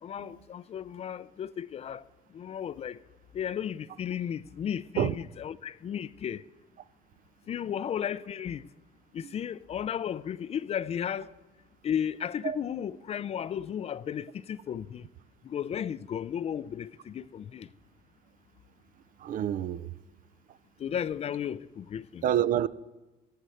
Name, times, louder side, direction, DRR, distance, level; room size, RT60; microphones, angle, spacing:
voice 1, 0.0-2.0 2.3-3.0 3.3-6.4 7.5-8.7 9.1-11.3 11.8-15.1 15.4-17.7 20.8-22.2, left 9 dB, 40° left, 0.4 m, -34 dB
voice 2, 19.2-19.9 20.5-20.6 22.2-22.7, right 10 dB, 55° right, 0.4 m, -28 dB
15.5 x 5.4 x 9.0 m
cardioid pair, 110°, 17 cm